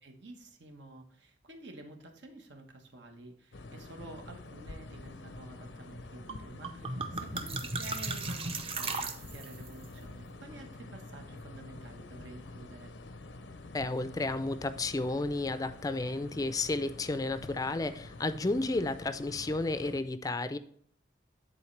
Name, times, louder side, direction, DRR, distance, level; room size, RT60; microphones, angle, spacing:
voice 1, 0.0-12.9, right 1 dB, 80° right, 3 dB, 1.2 m, -50 dB
sound 1, 3.5-20.0, left 2 dB, 90° left, 0.6 m, -47 dB
sound 2, 6.3-6.4 6.6-9.7, right 3 dB, 30° right, 0.6 m, -36 dB
voice 2, 13.7-20.6, left 2 dB, 20° left, 12 dB, 0.4 m, -32 dB
10.0 x 4.3 x 3.2 m, 0.63 s
head